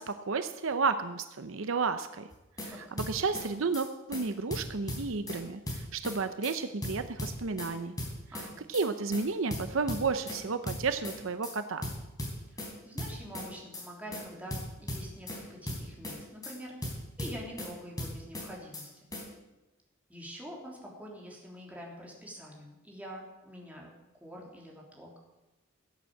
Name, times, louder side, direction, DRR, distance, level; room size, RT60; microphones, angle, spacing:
voice 1, 0.0-2.3 2.6-7.9 8.7-11.9, right 4 dB, 65° right, 10 dB, 0.7 m, -32 dB
sound 1, 2.3-2.7 3.0-3.5 3.7-3.9 4.1-4.2 4.5-5.4 5.7-6.2 6.4-6.5 6.8-7.7 8.0-8.5 8.7-8.9 9.1-9.2 9.5-10.4 10.7-11.2 11.4-11.5 11.8-12.7 13.0-13.5 13.7-13.9 14.1-14.2 14.5-15.4 15.7-16.2 16.4-16.5 16.8-17.7 18.0-18.5 18.7-18.9 19.1-19.2, left 1 dB, 20° left, 4.0 m, -37 dB
voice 2, 12.5-19.1 20.1-23.9 24.2-25.1, equal, 5° right, -2 dB, 3.5 m, -46 dB
16.5 x 8.4 x 7.7 m, 1.0 s
head